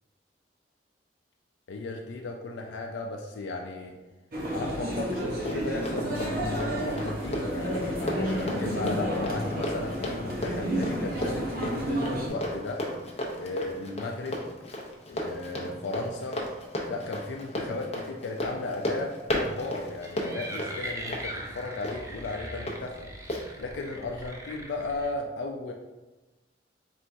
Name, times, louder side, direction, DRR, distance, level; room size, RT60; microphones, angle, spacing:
voice 1, 1.7-4.0 4.5-12.9 13.4-14.4 15.1-16.4 16.9-23.1 23.6-25.7, left 2 dB, 85° left, 1 dB, 0.4 m, -35 dB
sound 1, 4.3-12.3, equal, 55° right, 0.9 m, -31 dB
Run, 5.0-22.8 23.3-23.4, left 1 dB, 35° left, 0.6 m, -35 dB
sound 2, 19.9-25.1, right 1 dB, 15° right, 0.4 m, -40 dB
4.4 x 3.4 x 2.6 m, 1.1 s
head